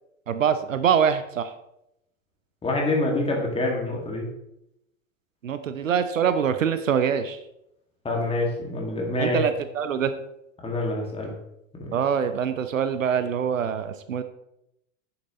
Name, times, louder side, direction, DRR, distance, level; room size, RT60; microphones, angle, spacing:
voice 1, 0.3-1.5 5.4-7.4 9.2-10.1 11.9-14.2, right 7 dB, 75° right, 11 dB, 0.7 m, -24 dB
voice 2, 2.6-4.3 8.0-9.4 10.6-11.3 11.8-11.9, left 2 dB, 15° left, -1 dB, 2.3 m, -26 dB
9.3 x 7.0 x 3.2 m, 0.82 s
figure-of-eight pair, 85°, 40 cm